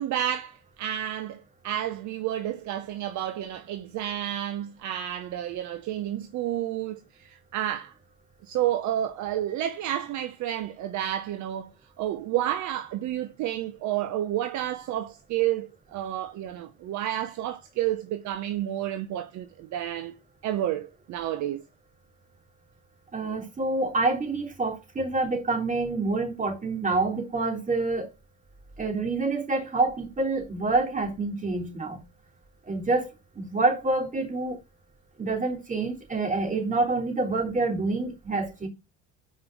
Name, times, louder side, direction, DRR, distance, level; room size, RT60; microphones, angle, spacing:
voice 1, 0.0-7.9 8.4-11.7 12.0-20.1 20.4-21.6, right 12 dB, 50° right, 0.8 m, -30 dB
voice 2, 23.1-28.1 28.8-32.0 32.7-34.6 35.2-38.7, right 3 dB, 20° right, 3.2 m, -27 dB
5.4 x 5.3 x 5.9 m
supercardioid pair, 100°, 36 cm